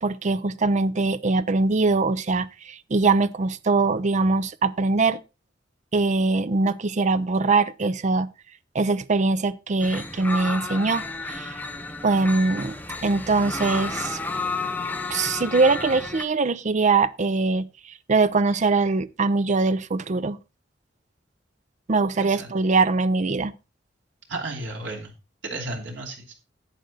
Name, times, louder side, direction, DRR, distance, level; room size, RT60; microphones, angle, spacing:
voice 1, 0.0-5.2 5.9-8.3 8.7-11.0 11.3-11.5 12.0-12.8 13.0-14.2 15.1-17.7 18.1-20.4 21.9-23.5, right 3 dB, 40° right, 0.5 m, -22 dB
sound 1, 9.8-16.2, left 3 dB, 10° left, 0.9 m, -32 dB
voice 2, 22.2-22.5 24.3-25.1 25.4-26.3, right 2 dB, 85° right, 2.9 m, -33 dB
11.5 x 8.0 x 3.9 m
head